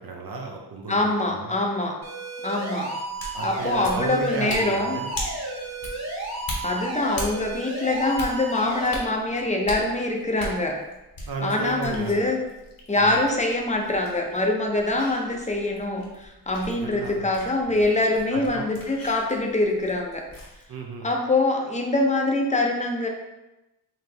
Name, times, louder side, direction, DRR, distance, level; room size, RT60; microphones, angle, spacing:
voice 1, 0.0-1.6 3.3-5.1 11.3-12.3 13.0-13.2 16.7-17.3 17.7-18.0 18.3-18.7 20.7-21.1, right 3 dB, 60° right, 1 dB, 0.7 m, -34 dB
voice 2, 0.9-1.9 2.4-2.9 3.4-5.0 6.6-10.8 11.4-12.4 12.9-20.2 21.0-23.1, left 2 dB, 20° left, 1 dB, 0.5 m, -24 dB
sound 1, 2.0-8.9, right 2 dB, 40° right, 1.3 m, -33 dB
sound 2, 3.0-20.6, left 1 dB, 55° left, 1.0 m, -40 dB
4.0 x 3.2 x 2.7 m, 0.98 s
wide cardioid pair, 95°, 41 cm